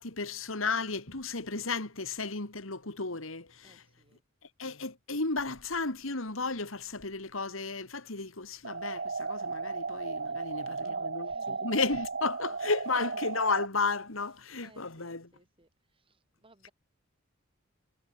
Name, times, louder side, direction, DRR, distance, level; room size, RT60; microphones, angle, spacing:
voice 1, 0.0-3.8 4.6-15.3, left 3 dB, 70° left, 2.9 m, -33 dB
voice 2, 3.6-4.2 10.2-11.7 14.6-16.7, right 2 dB, 25° right, 5.2 m, -62 dB
sound 1, 8.6-13.7, right 4 dB, 50° right, 2.4 m, -35 dB
head